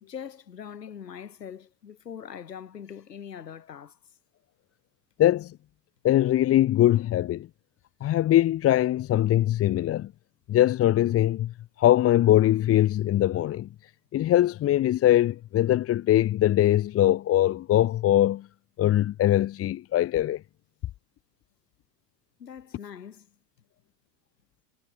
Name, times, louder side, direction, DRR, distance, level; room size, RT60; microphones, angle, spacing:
voice 1, 0.0-4.0 22.4-23.3, left 8 dB, 85° left, 2.4 m, -42 dB
voice 2, 5.2-5.6 6.0-7.5 8.0-10.1 10.5-11.5 11.8-13.7 14.1-18.5 18.8-20.4, left 13 dB, 30° left, 1.3 m, -22 dB
hypercardioid pair, 95°, 48 cm